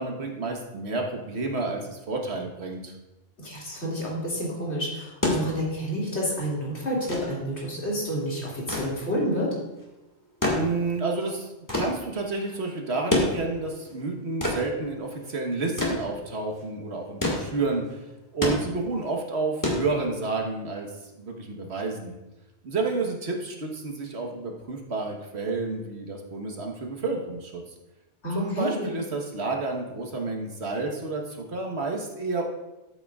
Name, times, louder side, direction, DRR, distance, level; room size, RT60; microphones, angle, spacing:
voice 1, 0.0-2.9 10.4-18.0 18.3-20.9 21.2-22.1 22.6-27.6 28.3-32.4, right 3 dB, 70° right, 2 dB, 1.5 m, -30 dB
voice 2, 3.4-9.5 28.2-28.9, equal, 75° left, -6 dB, 2.9 m, -29 dB
sound 1, 5.2-20.5 21.7-21.8, left 1 dB, 15° left, 1.8 m, -30 dB
13.0 x 8.0 x 2.4 m, 1.0 s
omnidirectional pair, 1.2 m